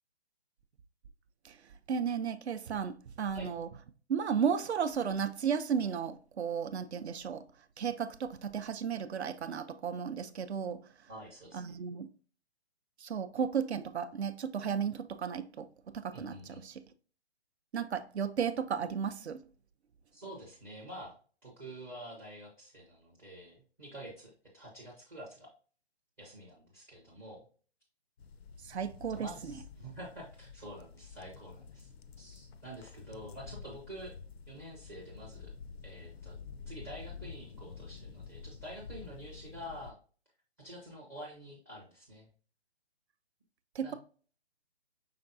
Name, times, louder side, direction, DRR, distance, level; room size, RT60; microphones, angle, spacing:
voice 1, 1.9-3.7 4.1-7.4 7.8-10.8 11.5-12.1 13.0-16.8 17.7-19.4 28.7-29.5 43.8-43.9, right 7 dB, 75° right, 0.5 m, -34 dB
voice 2, 11.1-11.6 16.1-16.6 20.1-21.2 21.4-25.5 26.2-27.4 28.6-28.7 29.1-31.9 32.2-34.1 34.5-35.5 35.8-36.3 36.7-39.9 40.6-42.3 43.8-43.9, equal, 10° right, 0.4 m, -48 dB
sound 1, 28.2-39.9, left 5 dB, 65° left, 0.5 m, -49 dB
5.7 x 3.5 x 2.5 m
figure-of-eight pair, 145°, 33 cm